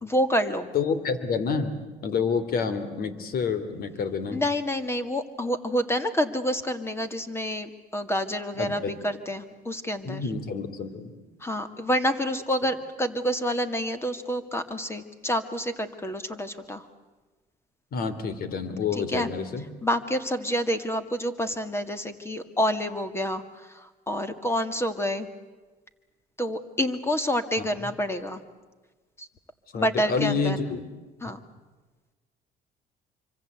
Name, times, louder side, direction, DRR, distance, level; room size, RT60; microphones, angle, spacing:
voice 1, 0.0-0.7 4.3-10.2 11.4-16.9 19.1-19.3 19.8-25.3 26.4-28.4 29.2-29.3 29.7-30.6 31.2-31.4, equal, 15° left, 10 dB, 2.0 m, -28 dB
voice 2, 0.7-4.4 8.5-8.9 10.0-11.2 17.9-19.6 27.6-27.7 29.7-30.8 31.2-31.3, left 5 dB, 60° left, 12 dB, 2.9 m, -28 dB
25.5 x 25.0 x 8.1 m, 1.3 s
cardioid pair, 110°, 17 cm